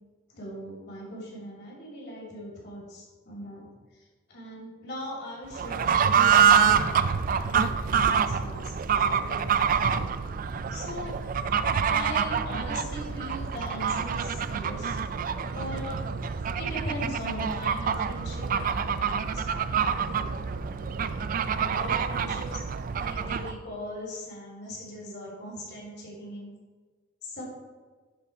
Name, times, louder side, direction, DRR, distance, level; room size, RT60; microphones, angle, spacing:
voice 1, 0.3-3.6 3.9-7.0 7.4-9.9 10.7-11.2 11.8-15.0 15.5-15.8 16.6-21.0 21.2-22.6 23.0-26.5 27.2-27.4, equal, 55° left, -3 dB, 2.6 m, -40 dB
Fowl / Bird, 5.5-23.6, right 7 dB, 40° right, 0.3 m, -26 dB
11.0 x 4.1 x 4.5 m, 1.4 s
head